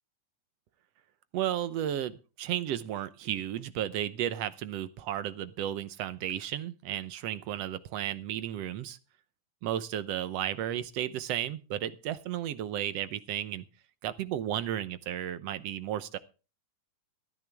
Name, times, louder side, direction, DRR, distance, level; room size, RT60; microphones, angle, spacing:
voice 1, 1.3-9.0 9.6-13.6 14.0-16.2, right 11 dB, 70° right, 14 dB, 1.7 m, -33 dB
17.0 x 14.0 x 3.5 m, 0.33 s
omnidirectional pair, 3.4 m